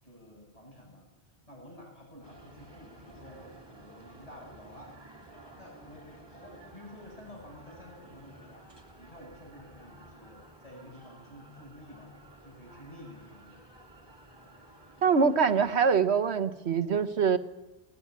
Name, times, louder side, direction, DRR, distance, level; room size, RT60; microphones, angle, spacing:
voice 1, 0.0-5.0 5.5-8.7 9.0-12.1 12.4-13.6, left 1 dB, 35° left, -1 dB, 8.1 m, -50 dB
sound 1, 2.2-15.8, right 1 dB, 25° right, 3.2 m, -53 dB
voice 2, 15.0-17.4, right 6 dB, 85° right, 9 dB, 1.5 m, -24 dB
20.0 x 19.5 x 9.6 m, 0.97 s
omnidirectional pair, 1.1 m